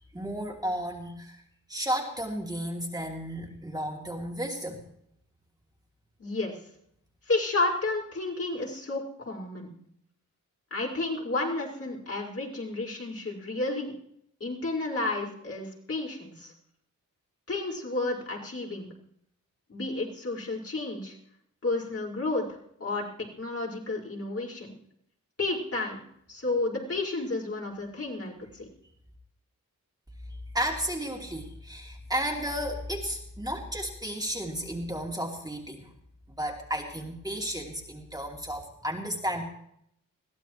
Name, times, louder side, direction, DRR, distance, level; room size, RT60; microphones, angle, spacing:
voice 1, 0.1-1.4 1.7-4.8 30.5-35.9 36.4-39.4, equal, 10° right, 0 dB, 2.8 m, -33 dB
voice 2, 6.2-6.5 7.3-9.7 10.7-13.9 14.4-16.5 17.5-18.9 19.7-21.2 21.6-23.1 23.4-24.7 25.4-26.0 26.3-28.7, left 2 dB, 45° left, -2 dB, 5.2 m, -31 dB
21.5 x 15.5 x 3.1 m, 0.72 s
cardioid pair, 75°, 33 cm